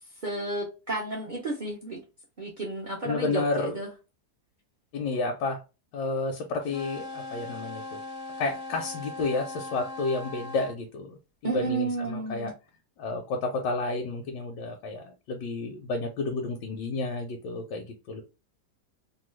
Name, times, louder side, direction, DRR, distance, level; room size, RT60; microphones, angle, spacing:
voice 1, 0.2-2.0 2.4-3.9 11.4-12.5, right 3 dB, 75° right, 0.4 m, -32 dB
voice 2, 3.0-3.8 4.9-5.6 5.9-8.0 8.4-11.2 11.5-12.5 13.0-18.2, left 3 dB, 85° left, 1.2 m, -31 dB
sound 1, 6.6-10.8, left 2 dB, 70° left, 0.7 m, -39 dB
3.0 x 2.2 x 3.1 m
omnidirectional pair, 1.8 m